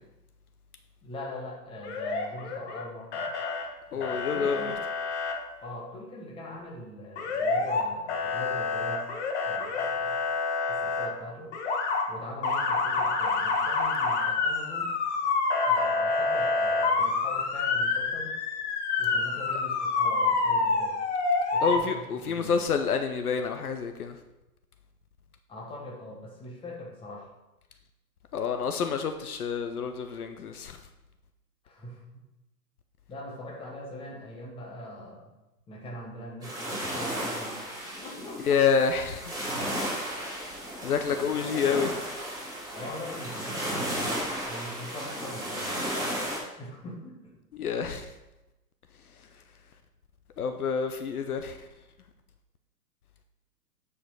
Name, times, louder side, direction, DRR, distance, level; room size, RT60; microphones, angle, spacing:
voice 1, 1.0-3.3 3.9-4.8 5.6-9.1 9.4-10.2 10.7-11.5 12.1-14.9 15.6-18.4 19.0-21.0 21.5-22.6 25.5-27.3 31.6-32.2 33.1-35.3 35.7-37.6 38.0-38.4 41.4-41.6 42.7-47.3, left 1 dB, 10° left, -2 dB, 1.4 m, -42 dB
Motor vehicle (road) / Siren, 1.8-2.8 3.1-3.6 4.0-5.3 7.2-7.8 8.1-11.1 11.5-12.0 12.4-21.8, left 4 dB, 45° left, 1.5 m, -27 dB
voice 2, 3.9-4.7 21.6-24.2 28.3-30.8 38.4-39.3 40.2-40.4 40.8-41.9 47.5-48.1 50.4-51.7, left 6 dB, 65° left, 7 dB, 0.8 m, -28 dB
sound 1, 36.4-46.4, equal, 10° right, 2.9 m, -34 dB
8.7 x 4.9 x 4.9 m, 0.99 s
figure-of-eight pair, 120°, 48 cm